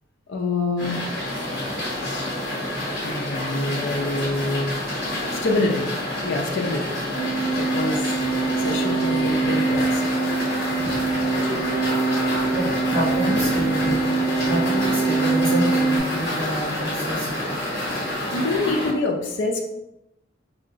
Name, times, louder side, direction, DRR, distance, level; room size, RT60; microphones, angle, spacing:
voice 1, 0.3-1.0 2.0-2.2 3.0-4.8 5.3-5.9 6.2-7.0 7.5-8.1 8.6-10.1 18.3-19.6, left 2 dB, 75° left, 1 dB, 0.4 m, -26 dB
sound 1, 0.8-18.9, left 1 dB, 55° left, 0.9 m, -28 dB
sound 2, 7.1-16.0, right 3 dB, 25° left, 0.7 m, -24 dB
voice 2, 12.5-17.5, right 1 dB, 30° right, -9 dB, 1.2 m, -28 dB
3.7 x 2.1 x 2.6 m, 0.90 s
head